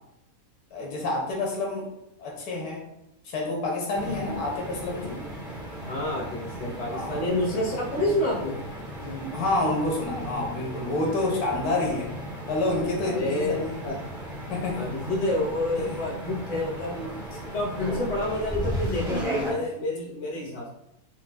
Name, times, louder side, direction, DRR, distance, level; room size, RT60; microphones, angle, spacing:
voice 1, 0.7-1.9 2.2-2.8 3.2-5.2 6.9-7.2 9.0-12.1 12.5-13.8 14.5-14.9 15.8-16.0, left 2 dB, 85° left, -1 dB, 1.3 m, -28 dB
sound 1, 3.9-19.5, right 1 dB, 5° right, 1.0 m, -36 dB
voice 2, 5.8-8.6 13.0-13.9 14.7-17.1 17.5-20.7, left 1 dB, 30° left, -4 dB, 0.8 m, -28 dB
4.6 x 2.3 x 2.3 m, 0.84 s
omnidirectional pair, 1.6 m